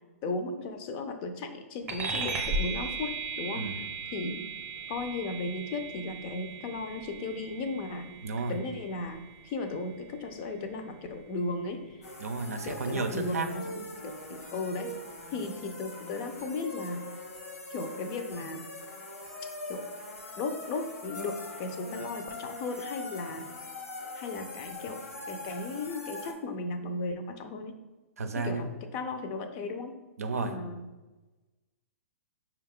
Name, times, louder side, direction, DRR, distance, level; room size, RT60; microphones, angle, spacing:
voice 1, 0.2-3.1 3.4-4.4 4.9-8.1 8.5-12.1 12.6-14.9 15.3-17.0 17.7-18.6 19.7-19.9 20.4-23.5 24.1-27.7 28.3-28.7 28.9-29.9 30.4-30.8, left 3 dB, 35° left, 7 dB, 0.5 m, -36 dB
sound 1, 1.9-11.7, right 3 dB, 20° right, 0.7 m, -38 dB
voice 2, 8.2-8.6 12.2-13.5 28.2-28.7 30.2-30.6, right 4 dB, 80° right, 7 dB, 0.5 m, -32 dB
sound 2, 12.0-26.3, left 2 dB, 80° left, 1.1 m, -42 dB
5.1 x 2.3 x 3.6 m, 1.2 s
hypercardioid pair, 120°, 8 cm